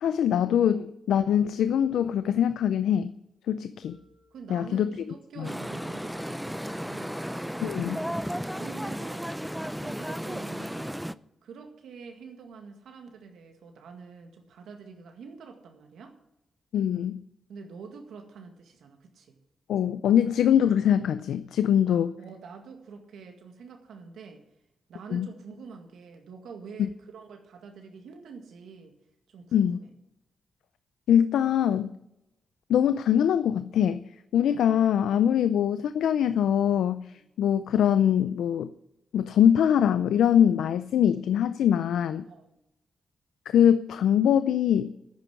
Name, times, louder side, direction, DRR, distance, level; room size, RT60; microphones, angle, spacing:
voice 1, 0.0-3.1 3.5-4.0 4.5-4.9 5.4-5.5 7.6-8.0 16.7-17.2 19.7-22.1 25.1-25.3 26.8-26.9 29.5-29.8 31.1-31.9 32.7-34.0 34.3-37.1 37.4-38.7 39.1-42.3 43.5-44.9, left 9 dB, 85° left, 0.5 m, -23 dB
sound 1, 1.8-3.0 3.8-5.0 5.8-7.0 7.8-9.0, left 2 dB, 40° left, 4.8 m, -60 dB
voice 2, 4.3-7.2 8.6-9.2 9.5-11.0 11.4-16.2 17.5-19.4 21.9-24.4 24.9-28.9 29.3-29.9 37.1-37.2 42.2-42.6, right 5 dB, 85° right, 1.9 m, -46 dB
sound 2, 5.4-11.1, equal, ahead, 0.6 m, -34 dB
10.5 x 9.0 x 9.7 m
cardioid pair, 55°, 0 cm